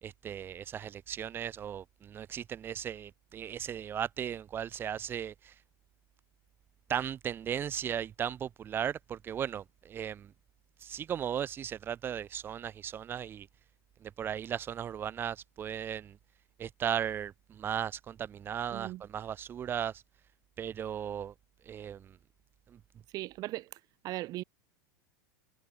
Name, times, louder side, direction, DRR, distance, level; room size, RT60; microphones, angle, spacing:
voice 1, 0.0-5.5 6.9-10.3 10.8-13.5 14.0-16.2 16.6-19.9 20.6-21.3 21.7-22.2 22.7-22.8, right 9 dB, 20° right, 0.8 m, -36 dB
voice 2, 18.7-19.0 23.1-24.4, right 17 dB, 40° right, 2.7 m, -38 dB
supercardioid pair, 150°, 10 cm